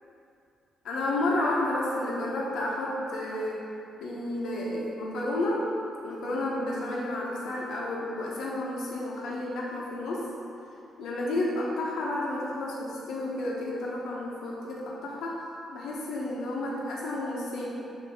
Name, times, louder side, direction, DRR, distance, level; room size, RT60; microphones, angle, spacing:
voice 1, 0.8-3.6 4.0-5.6 6.0-10.2 11.0-15.4 15.7-17.7, left 1 dB, 75° left, -5 dB, 1.2 m, -31 dB
8.0 x 3.0 x 6.0 m, 2.6 s
cardioid pair, 175°, 0 cm